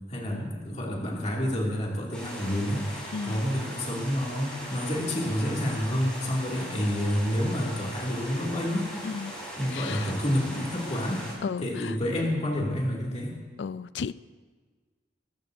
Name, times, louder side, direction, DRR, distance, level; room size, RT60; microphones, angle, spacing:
voice 1, 0.1-9.1 9.6-11.2 11.6-13.4, equal, 35° left, -2 dB, 2.4 m, -29 dB
sound 1, 2.1-11.3, equal, 5° left, 5.4 m, -39 dB
voice 2, 3.1-3.4 9.0-9.3 9.7-10.1 11.4-12.0 13.6-14.1, left 5 dB, 65° left, 17 dB, 0.4 m, -34 dB
22.0 x 14.0 x 2.7 m, 1.4 s
head